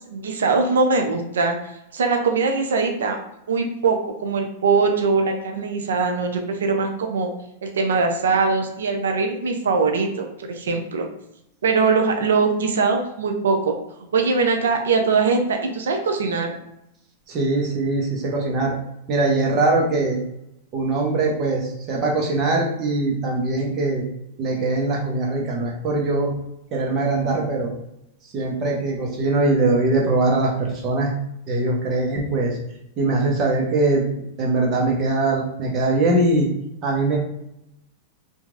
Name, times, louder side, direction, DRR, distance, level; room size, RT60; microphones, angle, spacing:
voice 1, 0.1-1.6 1.9-3.2 3.5-7.3 7.6-11.1 11.6-13.7 14.1-16.6, right 4 dB, 85° right, 4 dB, 0.5 m, -21 dB
voice 2, 17.3-18.7 19.1-20.2 20.7-24.0 24.4-26.3 26.7-27.7 28.3-31.1 31.5-32.6 33.0-34.0 34.4-36.5 36.8-37.2, right 2 dB, 40° right, -1 dB, 0.9 m, -21 dB
2.9 x 2.5 x 2.5 m, 0.83 s
hypercardioid pair, 115°, 0 cm